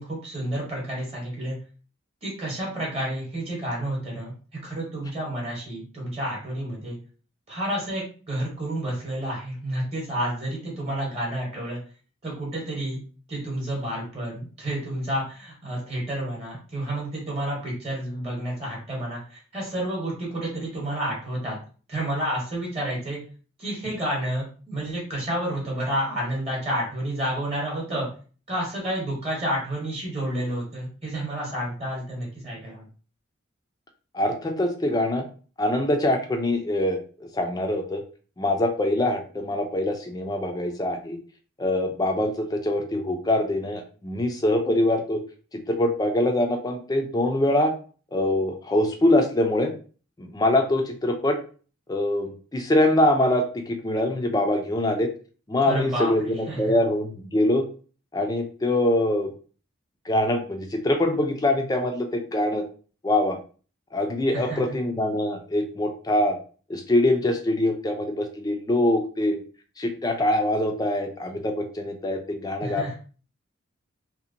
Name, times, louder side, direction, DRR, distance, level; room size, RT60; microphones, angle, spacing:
voice 1, 0.0-1.6 2.2-4.3 4.6-7.0 7.5-11.8 12.2-13.0 13.3-21.6 21.9-23.2 23.6-28.1 28.5-32.9 55.7-56.7 64.3-64.6 72.6-72.9, right 1 dB, 30° right, -3 dB, 0.9 m, -30 dB
voice 2, 34.1-35.3 35.6-37.0 37.3-38.0 38.4-41.2 41.6-45.2 45.7-47.7 48.1-49.7 50.2-51.4 51.9-55.1 55.5-57.7 58.1-59.3 60.1-62.6 63.0-63.4 63.9-66.4 66.7-69.4 69.8-72.9, left 1 dB, 20° left, 4 dB, 0.3 m, -24 dB
2.8 x 2.1 x 2.5 m, 0.39 s
head